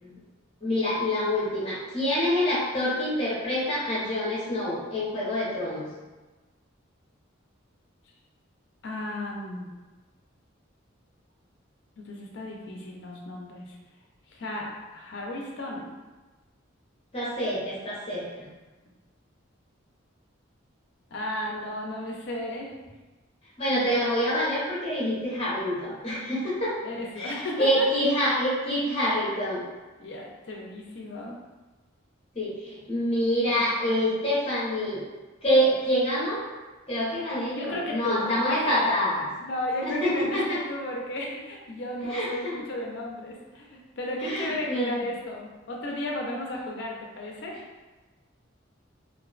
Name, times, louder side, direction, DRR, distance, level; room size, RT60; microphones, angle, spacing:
voice 1, 0.6-5.8 17.1-18.2 23.6-26.7 27.2-29.6 32.3-35.0 35.4-36.4 36.9-39.2 39.8-40.6 42.1-42.6 44.2-44.9, equal, 30° left, -7 dB, 0.8 m, -26 dB
voice 2, 8.8-9.7 12.0-13.8 14.3-15.9 21.1-22.7 26.8-27.9 30.0-31.4 33.5-34.1 37.5-39.0 39.4-47.5, left 1 dB, 60° left, -1 dB, 0.4 m, -34 dB
2.5 x 2.1 x 2.4 m, 1.2 s
head